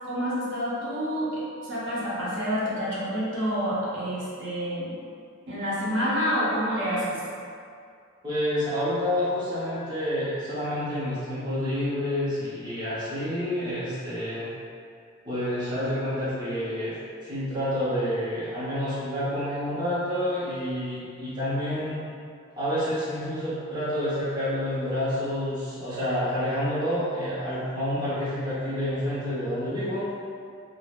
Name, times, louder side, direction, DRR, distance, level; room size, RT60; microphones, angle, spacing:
voice 1, 0.0-4.9 5.5-7.2, equal, 55° right, -8 dB, 0.7 m, -28 dB
voice 2, 8.2-14.5 15.2-16.9 17.2-22.0 22.6-30.1, left 1 dB, 20° right, -11 dB, 0.6 m, -28 dB
2.4 x 2.0 x 3.4 m, 2.4 s
head